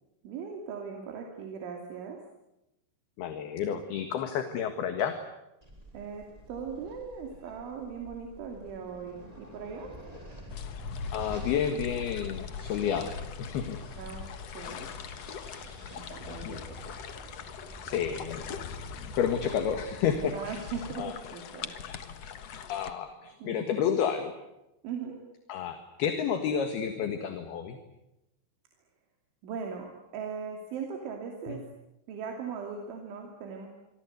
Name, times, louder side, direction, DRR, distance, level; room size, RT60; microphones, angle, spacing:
voice 1, 0.2-2.2 5.9-10.0 14.0-14.3 14.5-14.9 15.9-16.9 20.3-21.7 23.4-23.9 24.8-25.2 29.4-31.6 32.1-33.7, right 6 dB, 85° right, 2 dB, 5.1 m, -39 dB
voice 2, 3.2-5.2 11.1-13.1 13.4-13.8 16.5-16.6 17.9-20.6 21.0-21.1 21.7-22.0 22.7-24.3 25.5-27.8 31.5-31.6, left 8 dB, 65° left, 8 dB, 3.4 m, -31 dB
sound 1, 5.6-20.9, equal, 10° right, 5.0 m, -49 dB
sound 2, 10.5-22.9, left 7 dB, 85° left, 1.4 m, -41 dB
27.0 x 24.0 x 8.1 m, 0.91 s
omnidirectional pair, 5.3 m